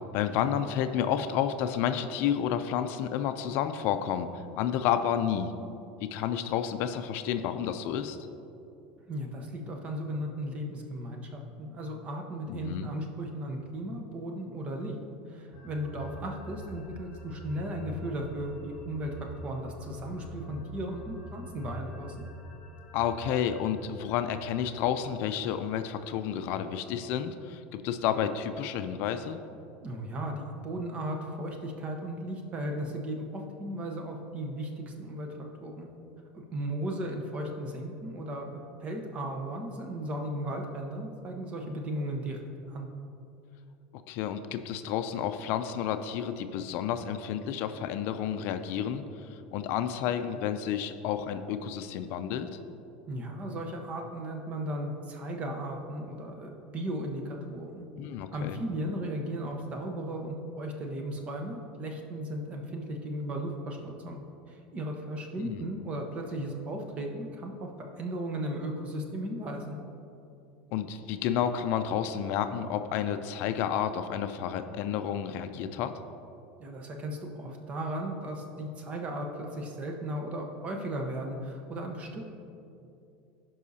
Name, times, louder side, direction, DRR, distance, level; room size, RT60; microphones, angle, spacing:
voice 1, 0.1-4.3 4.6-5.5 6.0-8.2 12.5-12.9 22.9-29.4 44.1-52.5 58.0-58.6 65.4-65.7 70.7-75.9, left 9 dB, 55° left, 9 dB, 0.4 m, -30 dB
voice 2, 9.1-14.9 15.3-19.1 19.4-22.3 29.8-35.3 35.6-35.9 36.3-42.4 42.7-42.9 53.1-57.8 58.3-64.2 64.5-67.7 67.9-69.8 76.6-82.2, right 1 dB, 30° right, 2 dB, 1.0 m, -36 dB
sound 1, 15.5-26.3, equal, 15° left, 1.7 m, -45 dB
15.0 x 5.5 x 2.8 m, 2.7 s
supercardioid pair, 140°, 5 cm